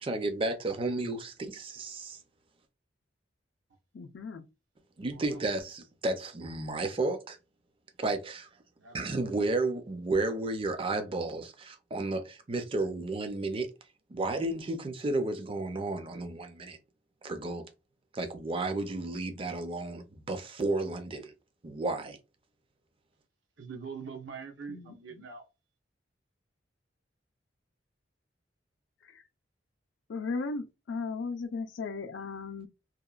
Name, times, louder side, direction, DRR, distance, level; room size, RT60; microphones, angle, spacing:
voice 1, 0.0-2.2 5.0-7.4 8.0-8.5 8.9-13.7 14.1-16.8 17.2-17.7 18.1-21.3 21.6-22.2, right 2 dB, 30° right, 0.4 m, -32 dB
voice 2, 3.9-4.4 24.7-25.2 29.1-29.2 30.1-32.7, left 4 dB, 75° left, 0.4 m, -36 dB
voice 3, 5.1-5.4 8.8-9.5 23.6-25.4, right 5 dB, 75° right, 0.8 m, -44 dB
2.9 x 2.2 x 2.3 m
head